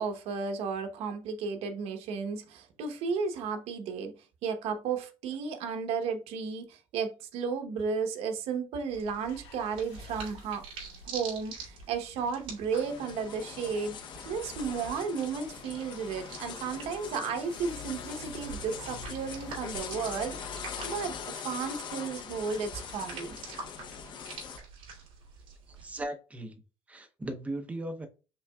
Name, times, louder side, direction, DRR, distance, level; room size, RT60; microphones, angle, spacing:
voice 1, 0.0-4.2 4.4-10.7 11.0-13.9 14.3-23.4, right 5 dB, 75° right, 0.9 m, -34 dB
sound 1, 8.9-26.0, right 4 dB, 60° right, 2.7 m, -47 dB
sound 2, 9.3-21.2, left 5 dB, 90° left, 1.4 m, -51 dB
sound 3, 12.7-24.6, left 7 dB, 50° left, 0.7 m, -42 dB
voice 2, 25.7-26.5 26.9-28.1, right 1 dB, 15° right, 0.7 m, -37 dB
5.7 x 3.8 x 2.3 m
cardioid pair, 155°, 10 cm